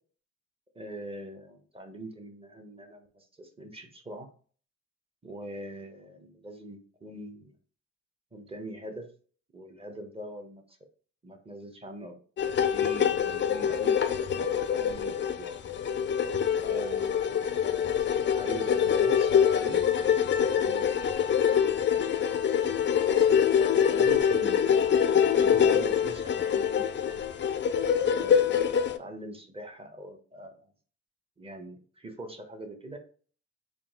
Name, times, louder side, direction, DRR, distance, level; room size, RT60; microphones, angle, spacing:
voice 1, 0.7-4.3 5.2-7.5 8.3-9.1 9.5-10.8 11.2-12.2 12.6-15.5 16.6-18.0 18.3-19.3 19.6-19.8 20.5-21.4 23.9-24.9 25.4-27.2 28.1-28.7 29.0-30.7 31.4-33.0, right 1 dB, 20° right, 5 dB, 0.9 m, -43 dB
sound 1, 12.4-29.0, left 8 dB, 40° left, 0.4 m, -25 dB
3.8 x 2.6 x 3.6 m, 0.42 s
cardioid pair, 90°, 30 cm